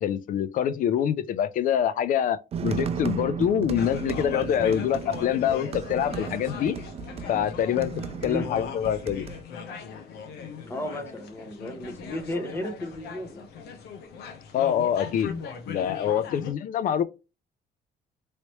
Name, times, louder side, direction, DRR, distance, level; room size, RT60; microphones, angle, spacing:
voice 1, 0.0-6.7 7.3-7.9 8.2-9.3 14.5-17.0, left 9 dB, 50° left, 0.4 m, -25 dB
sound 1, 2.5-9.4, right 7 dB, 35° right, 0.4 m, -35 dB
sound 2, 3.8-16.5, left 6 dB, 75° left, 0.9 m, -39 dB
voice 2, 10.6-13.5 16.2-16.3, left 1 dB, 15° left, 0.9 m, -34 dB
3.2 x 2.9 x 2.9 m
cardioid pair, 110°, 17 cm